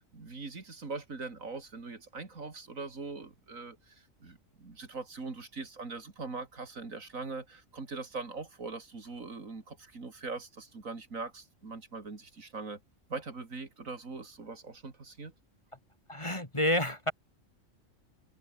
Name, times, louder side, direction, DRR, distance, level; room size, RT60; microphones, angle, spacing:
voice 1, 0.0-12.8 13.1-15.3, right 4 dB, 85° right, 3.4 m, -42 dB
voice 2, 16.1-17.1, left 1 dB, 20° left, 3.2 m, -29 dB
omnidirectional pair, 1.4 m